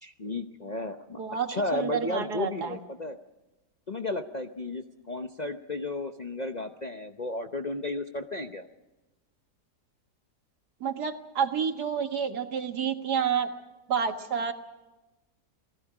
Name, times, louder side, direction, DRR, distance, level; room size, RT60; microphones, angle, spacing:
voice 1, 0.0-1.2 1.5-3.2 3.9-8.7, left 2 dB, 40° left, 5 dB, 0.6 m, -33 dB
voice 2, 1.1-2.8 10.8-13.5 13.9-14.5, right 7 dB, 70° right, 6 dB, 2.1 m, -29 dB
28.5 x 19.5 x 4.9 m, 1.1 s
omnidirectional pair, 1.8 m